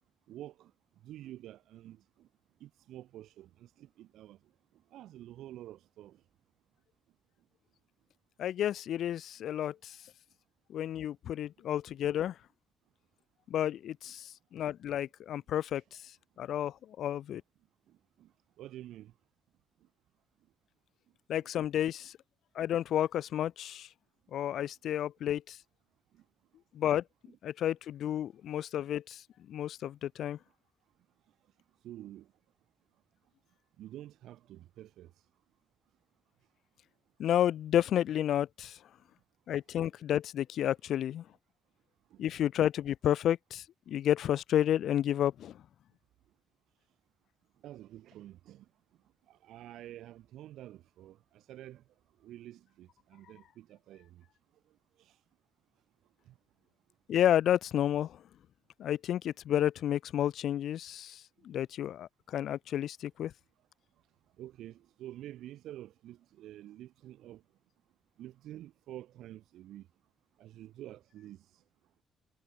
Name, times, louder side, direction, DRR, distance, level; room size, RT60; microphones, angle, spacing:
voice 1, 0.3-0.7 1.0-2.3 2.6-4.4 4.9-6.2 17.9-18.3 18.6-19.1 24.6-24.7 26.1-26.2 27.3-27.4 31.8-32.3 33.8-35.1 42.1-42.3 47.6-48.7 49.3-51.8 52.2-54.2 55.0-55.2 56.3-56.4 64.4-67.4 68.2-69.9 70.4-71.6, right 13 dB, 80° right, 5.8 m, -49 dB
voice 2, 8.4-10.0 10.7-12.4 13.5-16.0 16.4-17.4 21.3-22.1 22.6-23.9 24.3-25.6 26.7-27.0 27.4-30.4 37.2-38.8 39.5-41.2 42.2-45.6 57.1-58.2 58.8-63.3, left 11 dB, 75° left, 0.3 m, -31 dB
cardioid pair, 90°, 0 cm